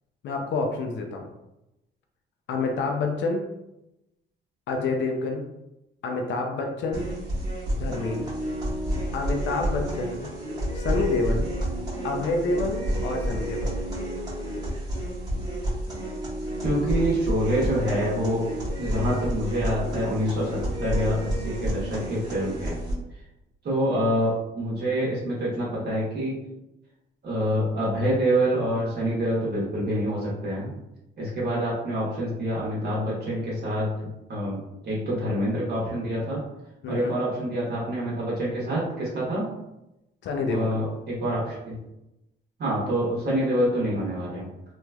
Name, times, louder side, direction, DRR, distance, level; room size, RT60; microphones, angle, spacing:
voice 1, 0.2-1.3 2.5-3.5 4.7-5.5 6.0-7.1 7.8-8.3 9.1-10.3 10.7-11.5 12.0-13.8 36.8-37.1 40.2-40.7, left 3 dB, 65° left, 3 dB, 0.5 m, -28 dB
sound 1, 6.9-22.9, right 1 dB, 20° right, 1.4 m, -30 dB
voice 2, 16.6-18.4 18.8-22.8 23.6-26.3 27.2-30.7 31.2-33.9 34.3-36.4 36.9-39.5 40.5-41.8 42.6-44.4, equal, 55° right, -6 dB, 1.2 m, -26 dB
3.1 x 3.0 x 2.3 m, 0.91 s
cardioid pair, 90°, 20 cm